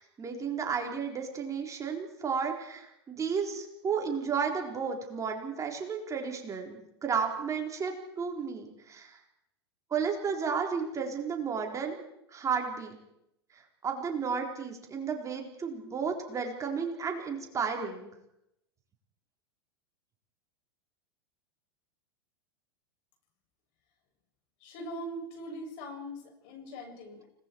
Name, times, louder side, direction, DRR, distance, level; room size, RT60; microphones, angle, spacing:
voice 1, 0.0-9.2 9.9-12.0 12.3-13.0 13.5-18.1, right 6 dB, 25° right, 2 dB, 4.0 m, -33 dB
voice 2, 24.6-27.2, equal, 55° left, 2 dB, 7.5 m, -41 dB
29.5 x 19.0 x 4.6 m, 0.82 s
hypercardioid pair, 95°, 14 cm